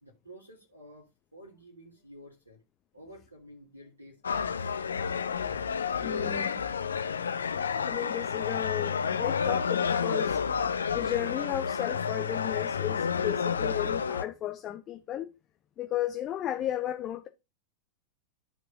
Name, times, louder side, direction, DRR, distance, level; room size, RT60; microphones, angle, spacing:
voice 1, 0.0-2.6 2.9-5.3 5.9-7.4, equal, 85° right, 1.8 m, -52 dB
sound 1, 4.2-14.2, left 6 dB, 70° left, 0.6 m, -30 dB
voice 2, 5.4-6.5 7.8-10.4 10.9-15.3 15.8-17.3, left 12 dB, 30° left, 0.8 m, -34 dB
13.5 x 4.7 x 2.5 m
figure-of-eight pair, 90°, 0 cm